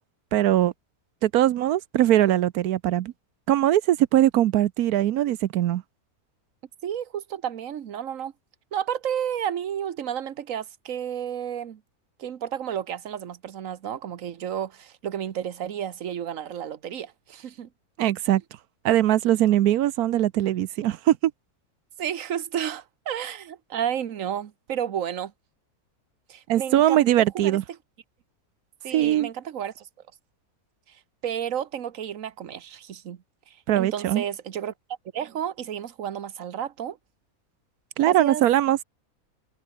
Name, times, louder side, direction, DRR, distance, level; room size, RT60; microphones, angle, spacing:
voice 1, 0.3-0.7 1.2-3.1 3.5-5.8 18.0-18.4 18.8-21.3 26.5-27.6 28.9-29.3 33.7-34.2 38.0-38.8, right 13 dB, 80° right, 1.2 m, -21 dB
voice 2, 6.8-8.3 8.7-11.8 12.2-17.7 18.3-18.4 22.0-25.3 26.3-27.1 27.3-27.6 28.8-29.9 30.9-31.0 31.2-34.7 35.1-37.0 38.0-38.4, right 9 dB, 60° right, 1.4 m, -32 dB
omnidirectional pair, 1.6 m